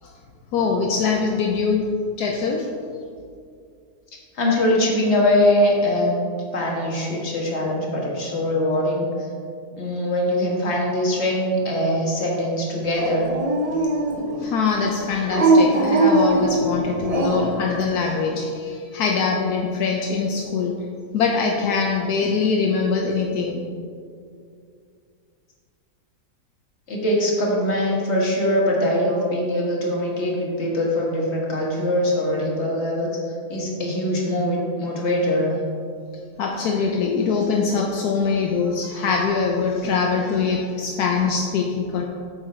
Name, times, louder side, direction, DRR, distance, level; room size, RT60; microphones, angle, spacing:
voice 1, 0.5-1.9 2.2-2.7 13.8-13.9 14.4-20.8 21.1-23.6 36.4-42.0, left 5 dB, 75° left, 1 dB, 1.2 m, -23 dB
voice 2, 4.3-6.1 6.5-9.3 9.7-13.3 26.9-33.1 33.5-35.5, left 1 dB, 45° left, -3 dB, 1.9 m, -22 dB
Dog, 12.9-14.4 15.3-17.6, right 2 dB, 75° right, 0.3 m, -20 dB
8.3 x 6.6 x 4.4 m, 2.3 s
omnidirectional pair, 1.7 m